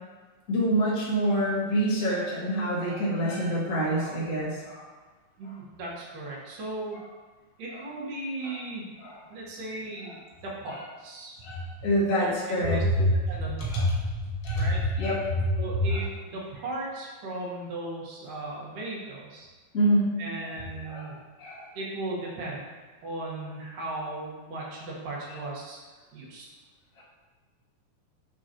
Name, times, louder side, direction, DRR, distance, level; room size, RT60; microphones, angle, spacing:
voice 1, 0.5-4.8 7.7-7.8 8.5-8.6 9.0-9.2 11.4-13.0 13.7-13.8 14.4-15.5 15.9-16.0 19.7-20.1 20.8-21.1 21.4-21.7 27.0-27.1, equal, 35° left, -7 dB, 1.6 m, -26 dB
voice 2, 5.4-7.0 7.6-8.8 9.3-11.4 12.1-12.3 12.6-13.7 14.5-14.8 15.6-19.5 20.2-21.2 21.7-22.7 23.0-25.8 26.1-26.5, right 2 dB, 75° right, -5 dB, 3.1 m, -37 dB
7.9 x 5.9 x 3.0 m, 1.3 s
omnidirectional pair, 3.9 m